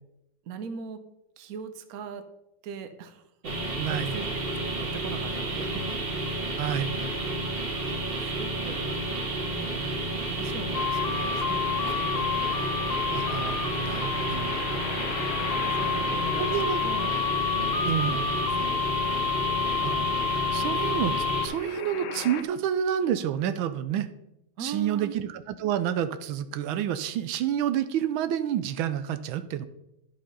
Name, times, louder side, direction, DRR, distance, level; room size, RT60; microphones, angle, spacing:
voice 1, 0.4-1.0 1.4-2.3 2.6-5.9 7.8-12.3 14.7-15.0 15.6-17.1 17.5-19.0 24.6-25.2, right 6 dB, 55° right, 9 dB, 1.2 m, -41 dB
sound 1, 3.4-21.5, right 2 dB, 30° right, 1.7 m, -31 dB
voice 2, 3.8-4.2 6.6-7.0 13.1-14.6 16.4-16.8 17.8-18.2 19.8-21.1 21.4-24.1 24.6-29.7, right 10 dB, 85° right, 12 dB, 1.4 m, -29 dB
sound 2, 10.7-22.4, left 8 dB, 90° left, 0.6 m, -30 dB
11.5 x 5.1 x 5.4 m, 0.85 s
omnidirectional pair, 2.2 m